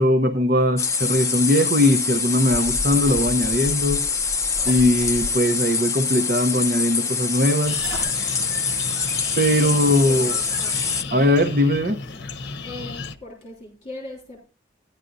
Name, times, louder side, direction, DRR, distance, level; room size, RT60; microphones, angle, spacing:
voice 1, 0.0-4.0 4.7-7.8 9.4-10.3 11.1-12.0, left 1 dB, 50° right, 0.8 m, -20 dB
sound 1, 0.8-11.0, left 5 dB, 15° left, 0.6 m, -25 dB
sound 2, 2.5-5.3 7.7-8.2, equal, 70° right, 1.1 m, -34 dB
sound 3, 7.7-13.2, left 4 dB, 65° left, 0.8 m, -34 dB
voice 2, 9.2-11.3 12.0-12.2 12.6-14.4, left 2 dB, 35° left, 3.4 m, -40 dB
14.0 x 10.5 x 2.7 m
head